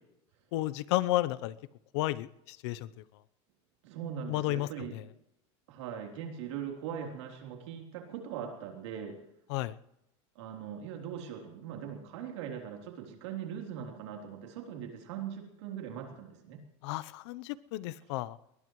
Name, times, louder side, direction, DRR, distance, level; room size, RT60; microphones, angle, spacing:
voice 1, 0.5-1.5 1.9-2.9 4.3-5.0 9.5-9.8 16.8-18.4, left 17 dB, 70° left, 17 dB, 0.8 m, -32 dB
voice 2, 3.8-4.9 5.7-9.2 10.4-16.6, right 8 dB, 80° right, 2 dB, 3.7 m, -40 dB
21.0 x 20.0 x 3.2 m, 0.83 s
supercardioid pair, 150°, 15 cm